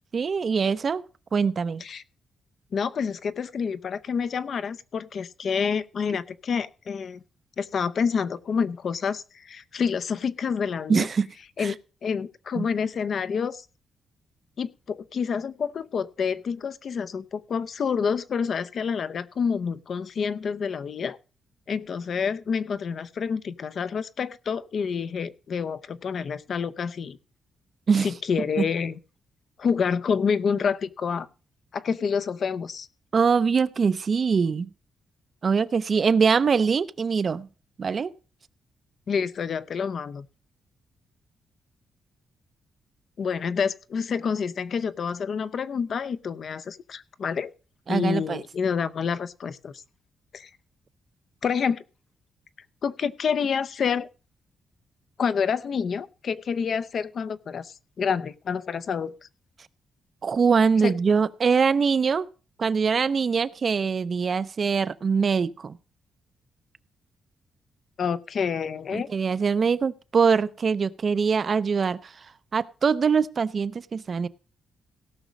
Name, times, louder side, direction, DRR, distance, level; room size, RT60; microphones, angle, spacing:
voice 1, 0.1-1.0 1.3-1.8 10.9-11.3 11.6-11.7 12.6-12.7 27.9-28.1 33.1-34.7 35.4-37.5 37.8-38.1 47.9-48.4 60.2-62.3 62.6-65.8 68.9-72.0 72.5-74.3, right 5 dB, 35° right, 15 dB, 0.5 m, -23 dB
voice 2, 2.7-7.2 7.6-11.1 11.6-13.6 14.6-21.2 21.7-27.2 28.0-29.0 29.6-31.3 31.7-32.9 39.1-40.3 43.2-47.5 47.9-49.7 50.3-50.5 51.4-51.8 52.8-54.1 55.2-59.1 60.8-61.0 68.0-69.1, left 6 dB, 45° left, 15 dB, 0.6 m, -28 dB
17.0 x 6.1 x 5.2 m, 0.36 s
wide cardioid pair, 165°, 0 cm